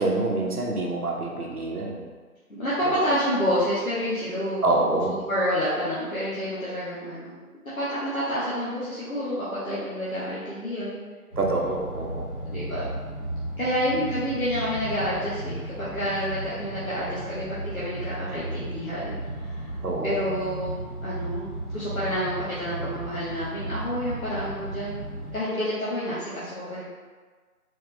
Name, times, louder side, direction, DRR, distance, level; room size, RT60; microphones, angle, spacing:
voice 1, 0.0-2.1 4.6-5.2 11.4-12.3 19.8-20.2, right 2 dB, 70° right, 0 dB, 0.9 m, -26 dB
voice 2, 2.5-4.8 5.1-7.4 7.8-11.0 12.5-12.9 13.6-25.0 25.3-26.9, equal, 65° left, -10 dB, 1.1 m, -29 dB
sound 1, 11.3-25.3, right 1 dB, 35° left, 1.3 m, -35 dB
4.2 x 3.3 x 2.5 m, 1.5 s
figure-of-eight pair, 175°, 46 cm